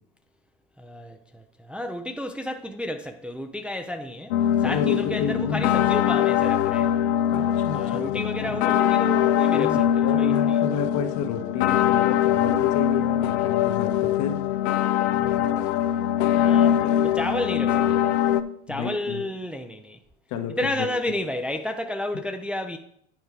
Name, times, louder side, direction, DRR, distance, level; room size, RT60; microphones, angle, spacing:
voice 1, 0.8-6.9 7.7-10.6 15.1-15.5 16.3-18.2 18.7-20.0 20.6-22.8, left 1 dB, 5° right, 0.5 m, -32 dB
sound 1, 4.3-18.4, left 11 dB, 80° left, 0.6 m, -22 dB
voice 2, 4.6-5.6 7.3-8.6 9.5-14.4 18.7-19.2 20.3-20.9, left 7 dB, 60° left, 1.3 m, -30 dB
9.0 x 4.5 x 4.9 m
supercardioid pair, 110°, 33 cm